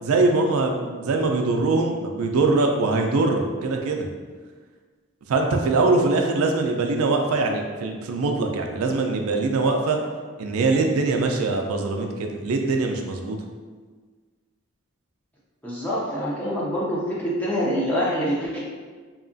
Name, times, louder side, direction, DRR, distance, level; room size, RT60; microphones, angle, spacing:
voice 1, 0.0-4.1 5.3-10.0 10.4-13.4, right 3 dB, 85° right, 3 dB, 0.3 m, -22 dB
voice 2, 15.6-18.6, equal, 5° left, -7 dB, 0.4 m, -25 dB
2.8 x 2.3 x 2.5 m, 1.5 s
head